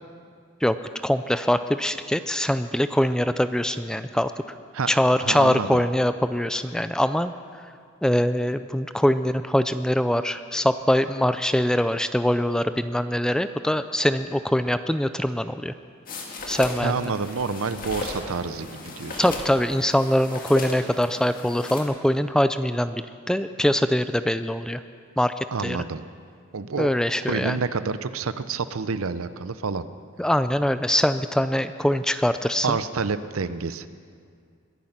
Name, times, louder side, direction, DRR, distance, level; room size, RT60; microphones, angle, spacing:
voice 1, 1.0-4.3 4.9-7.6 8.0-15.7 16.5-17.1 19.2-24.8 25.2-25.8 26.8-27.6 30.2-32.8, left 1 dB, 5° left, 11 dB, 0.3 m, -23 dB
voice 2, 5.2-5.8 16.8-19.2 25.5-26.0 26.5-26.9 27.3-29.9 32.6-33.9, right 4 dB, 80° right, 13 dB, 0.6 m, -28 dB
sound 1, 16.1-21.8, left 2 dB, 40° left, 1.9 m, -36 dB
22.0 x 10.5 x 5.9 m, 2.2 s
head